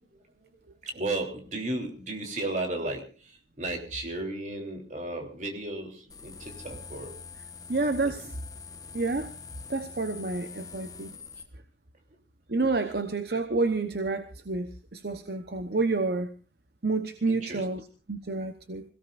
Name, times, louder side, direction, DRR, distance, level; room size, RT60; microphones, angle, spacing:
voice 1, 0.0-7.2 8.0-8.3 17.3-17.6, right 2 dB, 45° right, 3 dB, 3.3 m, -35 dB
sound 1, 6.1-11.4, left 5 dB, 20° left, 1.2 m, -45 dB
voice 2, 7.7-8.3 8.9-9.3 9.7-11.1 12.5-16.3 16.8-17.8 18.1-18.8, right 3 dB, 60° right, 9 dB, 1.0 m, -29 dB
26.0 x 17.5 x 2.6 m, 0.33 s
head